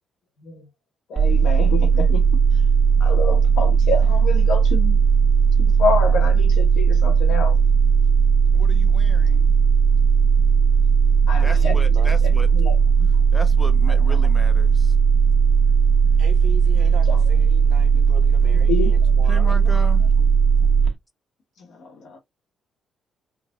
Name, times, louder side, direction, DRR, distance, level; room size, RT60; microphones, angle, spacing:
voice 1, 1.1-2.3 2.5-2.6 3.0-5.0 5.6-7.6 11.3-11.8 12.5-13.2 13.9-14.3 17.1-17.2 18.7-19.0 20.6-20.7 21.6-22.2, left 4 dB, 75° left, 1.4 m, -28 dB
sound 1, 1.1-20.9, right 6 dB, 15° right, 1.5 m, -17 dB
voice 2, 8.5-9.5 11.4-12.5 13.3-14.9 18.5-18.7 19.3-20.1, left 1 dB, 10° left, 0.8 m, -35 dB
voice 3, 11.4-12.9 16.2-19.7, right 6 dB, 75° right, 1.0 m, -40 dB
4.8 x 2.5 x 2.3 m
cardioid pair, 90°, 0 cm